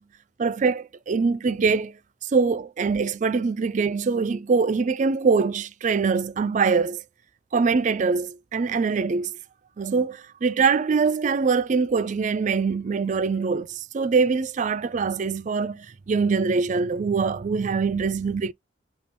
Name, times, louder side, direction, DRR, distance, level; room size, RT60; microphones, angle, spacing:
voice 1, 0.4-1.9 2.3-7.0 7.5-9.4 9.8-18.5, right 5 dB, 40° right, 0.4 m, -23 dB
5.2 x 2.4 x 2.8 m
head